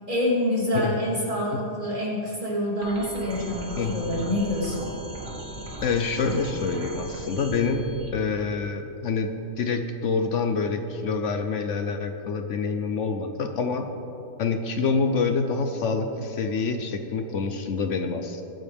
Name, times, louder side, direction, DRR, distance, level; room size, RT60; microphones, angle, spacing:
voice 1, 0.1-4.9, left 1 dB, 35° right, -6 dB, 3.6 m, -26 dB
sound 1, 2.8-8.1, right 1 dB, 80° right, 2.2 m, -37 dB
voice 2, 5.8-13.9 14.4-18.4, left 4 dB, 65° left, 6 dB, 1.0 m, -26 dB
21.5 x 9.8 x 3.5 m, 2.9 s
omnidirectional pair, 1.4 m